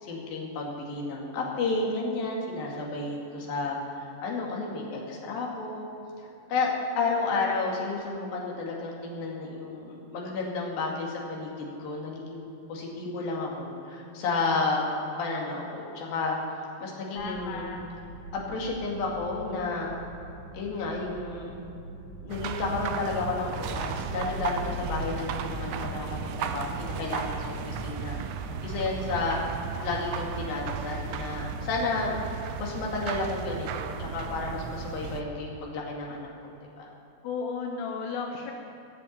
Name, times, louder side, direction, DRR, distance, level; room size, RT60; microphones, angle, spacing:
voice 1, 0.0-5.9 6.5-14.8 15.2-16.4 16.8-17.7 18.3-20.0 20.5-21.5 22.2-29.4 29.8-32.2 32.6-36.9, left 3 dB, 65° left, -2 dB, 4.1 m, -32 dB
voice 2, 17.1-17.8 37.2-38.5, left 5 dB, 90° left, 1 dB, 3.2 m, -34 dB
sound 1, 17.2-26.9, right 2 dB, 55° right, 1.2 m, -44 dB
sound 2, 22.3-35.2, right 6 dB, 80° right, 1.9 m, -35 dB
18.0 x 7.7 x 8.7 m, 3.0 s
omnidirectional pair, 4.6 m